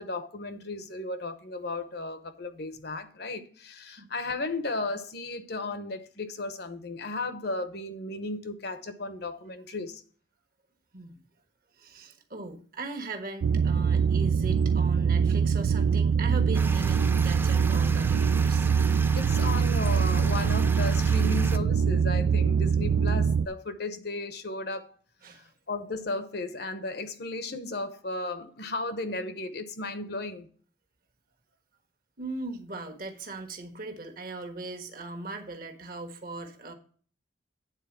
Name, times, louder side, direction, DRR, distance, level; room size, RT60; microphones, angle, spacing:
voice 1, 0.0-10.0 19.1-24.9 25.3-30.5, left 2 dB, 60° left, 0.9 m, -35 dB
voice 2, 11.8-18.7 25.2-25.5 32.2-36.7, right 2 dB, 50° right, 1.4 m, -39 dB
sound 1, 13.4-23.5, right 6 dB, 85° right, 0.3 m, -23 dB
sound 2, 16.5-21.6, right 3 dB, 10° right, 0.4 m, -38 dB
9.2 x 4.1 x 7.2 m
head